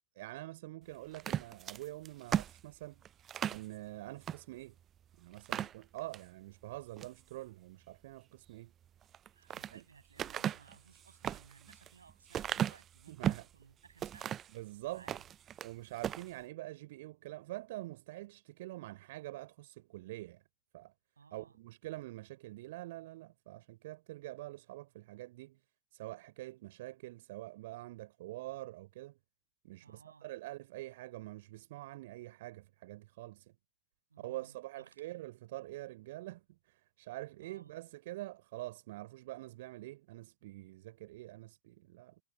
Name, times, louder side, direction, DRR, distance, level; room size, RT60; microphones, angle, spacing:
voice 1, 0.2-3.0 3.5-4.8 5.2-8.7 9.7-9.8 13.1-13.5 14.5-15.1 15.6-20.4 20.7-20.9 21.3-25.6 25.9-29.2 29.6-33.5 34.2-42.2, right 18 dB, 55° right, 4.1 m, -46 dB
Footsteps on the old wooden floor, 1.1-3.7 4.2-4.4 4.8-4.9 5.3-6.3 6.8-7.2 9.0-9.7 10.2-13.5 14.0-14.6 15.0-15.7 16.0-16.3, right 10 dB, 25° right, 0.4 m, -37 dB
voice 2, 9.3-14.4 14.9-15.2 21.2-21.6 29.8-30.3 34.1-35.2 37.4-37.7, right 5 dB, 75° right, 7.4 m, -60 dB
figure-of-eight pair, 90°, 0 cm